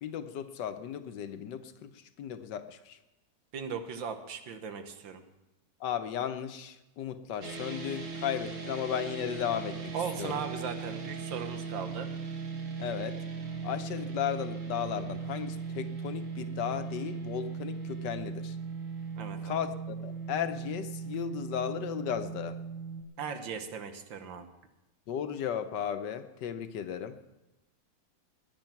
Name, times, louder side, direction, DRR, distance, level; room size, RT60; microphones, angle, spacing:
voice 1, 0.0-3.0 5.8-10.4 12.8-13.2 13.6-18.6 19.4-22.6 25.1-27.2, left 9 dB, 70° left, 10 dB, 1.5 m, -35 dB
voice 2, 3.5-5.2 9.9-12.1 19.2-19.6 23.2-24.5, right 6 dB, 90° right, 8 dB, 2.0 m, -38 dB
sound 1, 7.4-23.0, right 5 dB, 45° right, 2.2 m, -38 dB
20.0 x 9.6 x 5.9 m, 0.98 s
omnidirectional pair, 2.0 m